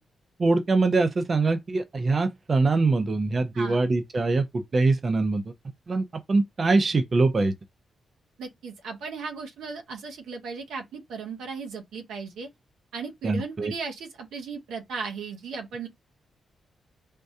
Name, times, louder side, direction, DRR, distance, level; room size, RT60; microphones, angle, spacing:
voice 1, 0.4-5.4 5.9-7.5 13.2-13.7, right 3 dB, 45° right, 0.6 m, -23 dB
voice 2, 8.4-12.5 12.9-15.9, right 5 dB, 80° right, 0.7 m, -36 dB
3.5 x 2.2 x 2.7 m
supercardioid pair, 45°, 0 cm